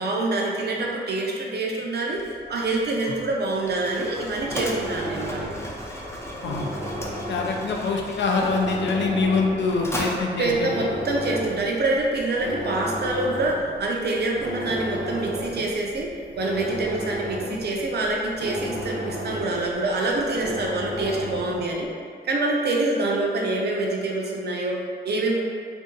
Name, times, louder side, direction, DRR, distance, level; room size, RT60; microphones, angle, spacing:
voice 1, 0.0-2.2 2.5-5.5 10.4-21.9 22.2-25.4, right 2 dB, 60° right, -1 dB, 0.5 m, -26 dB
Mechanisms, 2.1-11.8, left 1 dB, 15° left, 0.4 m, -37 dB
sound 1, 4.1-21.7, equal, 80° right, 1.0 m, -34 dB
voice 2, 7.3-10.7, left 4 dB, 80° left, 0 dB, 0.4 m, -24 dB
2.6 x 2.6 x 3.7 m, 2.1 s
wide cardioid pair, 165°, 19 cm